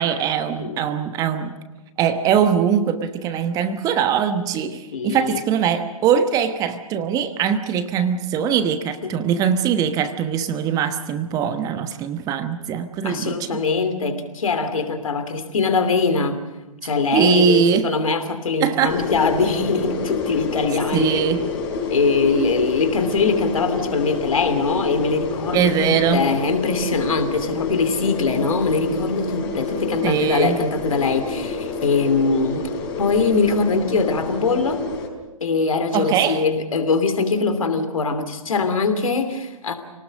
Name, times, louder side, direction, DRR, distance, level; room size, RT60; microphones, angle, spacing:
voice 1, 0.0-1.5 2.0-13.6 17.1-17.9 18.6-19.0 20.9-21.5 25.5-26.3 30.0-30.6 35.9-36.5, right 7 dB, 20° right, 10 dB, 1.1 m, -21 dB
voice 2, 4.9-5.4 9.0-9.2 13.0-16.4 16.8-21.2 21.9-32.7 33.0-34.8 35.4-39.7, left 4 dB, 65° left, 9 dB, 2.9 m, -22 dB
sound 1, 18.9-35.1, left 4 dB, 35° left, 4.6 m, -28 dB
28.0 x 19.0 x 6.5 m, 1.1 s
figure-of-eight pair, 125°, 19 cm